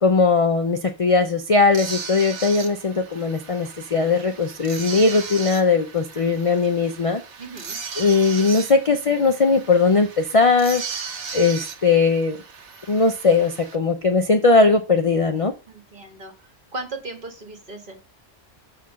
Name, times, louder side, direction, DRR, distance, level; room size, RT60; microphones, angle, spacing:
voice 1, 0.0-7.2 8.0-10.8 11.3-12.4 12.9-15.5, left 4 dB, 40° left, 5 dB, 0.5 m, -19 dB
sound 1, 1.7-13.8, right 6 dB, 75° right, 1.3 m, -36 dB
voice 2, 7.4-7.8 15.7-18.0, right 2 dB, 45° right, 3 dB, 1.9 m, -37 dB
7.0 x 4.1 x 6.2 m, 0.32 s
omnidirectional pair, 1.2 m